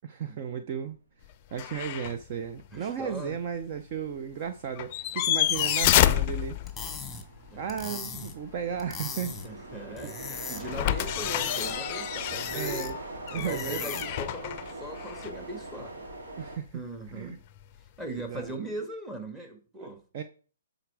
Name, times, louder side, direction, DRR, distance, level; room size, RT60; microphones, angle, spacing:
voice 1, 0.0-1.0 1.5-6.6 7.6-9.5 10.0-10.1 12.5-12.9 13.3-13.9 16.4-16.8 17.1-17.4 18.2-18.5 19.8-19.9 20.1-20.2, right 7 dB, 40° right, 0.6 m, -34 dB
sound 1, 1.6-2.2 2.6-2.7 4.8-7.1 10.6-15.4 17.6-17.7, left 13 dB, 35° left, 0.5 m, -28 dB
voice 2, 2.7-3.4 7.5-7.8 9.4-12.9 13.3-16.0 16.7-17.4 18.0-20.0, right 1 dB, 10° right, 1.5 m, -39 dB
sound 2, 3.0-16.6, right 2 dB, 80° right, 2.2 m, -43 dB
sound 3, 5.4-14.3, left 4 dB, 5° left, 1.5 m, -41 dB
9.9 x 4.0 x 4.7 m
hypercardioid pair, 140°, 0 cm